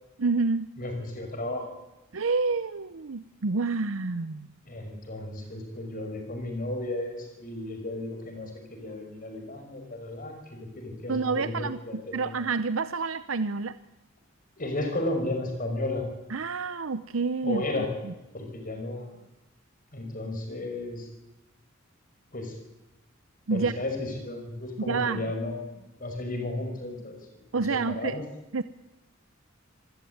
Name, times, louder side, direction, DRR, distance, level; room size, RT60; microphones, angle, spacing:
voice 1, 0.2-0.7 2.1-4.5 11.1-13.8 16.3-17.6 18.0-18.1 23.5-23.7 24.9-25.3 27.5-28.1 28.5-28.6, right 4 dB, 75° right, 13 dB, 0.7 m, -28 dB
voice 2, 0.8-1.7 4.7-12.3 14.6-16.0 17.4-17.9 18.3-19.2 19.9-21.1 22.3-22.6 23.5-28.2, left 2 dB, 40° left, 5 dB, 5.7 m, -34 dB
26.5 x 15.0 x 9.5 m, 0.98 s
head